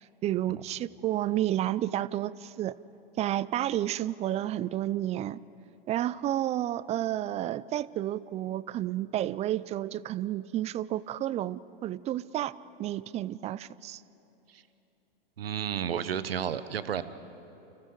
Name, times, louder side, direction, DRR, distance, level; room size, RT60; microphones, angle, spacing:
voice 1, 0.0-2.8 3.2-5.4 5.9-12.5 12.8-14.0, right 13 dB, 25° right, 20 dB, 0.4 m, -31 dB
voice 2, 15.4-17.0, right 8 dB, 80° right, 13 dB, 1.1 m, -32 dB
30.0 x 29.5 x 3.9 m, 3.0 s
hypercardioid pair, 105°, 29 cm